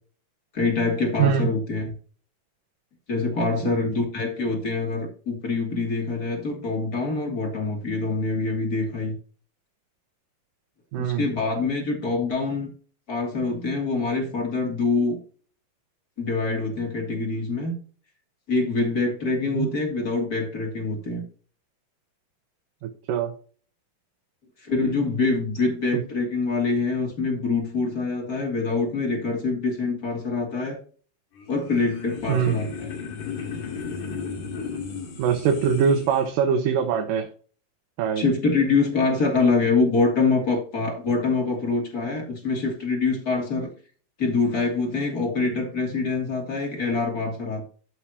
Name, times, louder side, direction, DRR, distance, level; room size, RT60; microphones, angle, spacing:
voice 1, 0.5-1.9 3.1-9.1 11.0-12.7 13.1-15.2 16.2-17.7 18.5-21.2 24.6-30.8 31.5-32.9 38.2-43.7 44.2-47.6, left 3 dB, 25° left, 1 dB, 3.0 m, -25 dB
voice 2, 10.9-11.2 19.5-19.7 22.8-23.3 32.3-32.6 35.2-37.3 38.0-38.2, right 7 dB, 75° right, 5 dB, 2.5 m, -23 dB
sound 1, 31.4-36.2, left 5 dB, 70° left, 4.0 m, -34 dB
13.5 x 6.2 x 3.0 m, 0.41 s
omnidirectional pair, 4.0 m